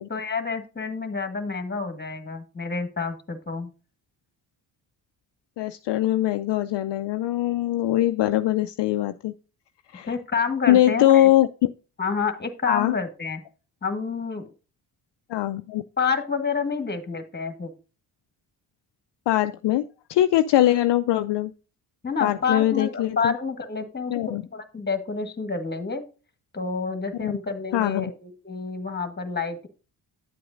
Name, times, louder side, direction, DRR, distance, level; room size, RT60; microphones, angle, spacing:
voice 1, 0.1-3.7 10.1-11.3 12.0-13.4 13.8-14.5 16.0-17.7 22.0-24.1 24.5-26.0 26.5-29.7, left 5 dB, 20° left, 7 dB, 1.7 m, -28 dB
voice 2, 5.6-9.3 9.9-10.1 10.7-11.7 12.7-12.9 15.3-15.8 19.3-21.5 22.2-23.3 24.1-24.4 27.2-27.3 27.7-28.1, left 13 dB, 60° left, 9 dB, 0.6 m, -22 dB
9.4 x 7.7 x 2.6 m, 0.34 s
supercardioid pair, 55°, 48 cm